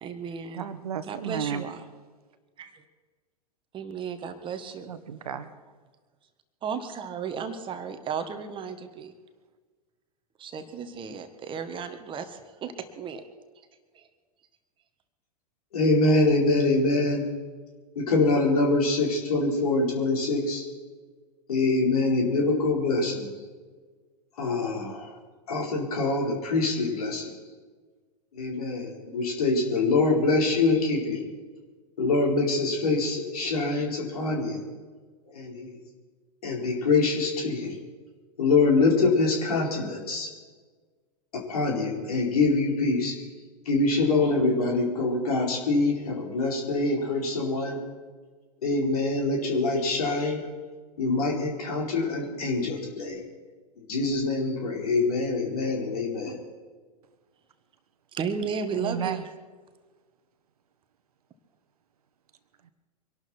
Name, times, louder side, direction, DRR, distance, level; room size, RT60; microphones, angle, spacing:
voice 1, 0.0-0.7 1.0-1.8 2.6-2.7 3.7-4.9 6.6-9.1 10.4-13.2 13.9-14.1 58.1-59.3, right 6 dB, 25° right, 8 dB, 1.6 m, -34 dB
voice 2, 0.5-1.6 4.9-5.5 58.8-59.2, right 8 dB, 65° right, 11 dB, 1.5 m, -32 dB
voice 3, 15.7-17.3 17.9-20.6 21.5-23.3 24.4-25.1 25.5-27.3 28.3-31.2 32.0-34.6 35.3-35.8 36.4-37.8 38.4-40.3 41.3-43.1 43.7-47.8 48.6-50.4 51.0-53.2 53.8-56.4, left 3 dB, 65° left, 0 dB, 4.6 m, -25 dB
24.5 x 12.0 x 4.5 m, 1.4 s
figure-of-eight pair, 95°, 21 cm